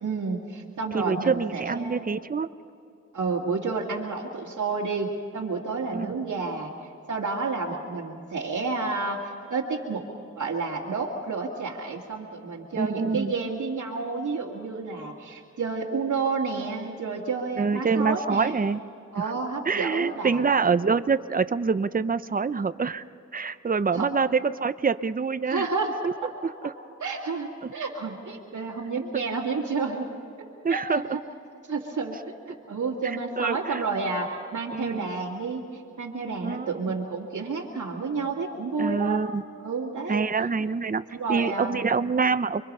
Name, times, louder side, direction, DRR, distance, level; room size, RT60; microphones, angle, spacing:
voice 1, 0.0-2.1 3.1-6.7 7.1-10.1 10.4-18.6 19.1-20.4 23.9-24.1 25.5-25.9 26.2-26.3 27.0-30.1 30.7-31.2 31.7-39.2 39.6-40.2 41.1-41.9, right 4 dB, 90° right, -4 dB, 2.1 m, -30 dB
voice 2, 0.9-2.5 5.9-6.1 12.8-13.3 17.6-18.8 19.2-19.3 19.7-23.0 23.3-25.7 26.0-26.1 26.6-26.7 27.6-27.7 29.1-29.2 30.6-31.2 33.0-33.8 34.7-35.1 36.4-37.0 38.8-39.4 40.1-41.0 41.3-42.6, right 5 dB, 30° right, 13 dB, 0.6 m, -26 dB
28.5 x 22.5 x 5.5 m, 2.6 s
wide cardioid pair, 60°, 30 cm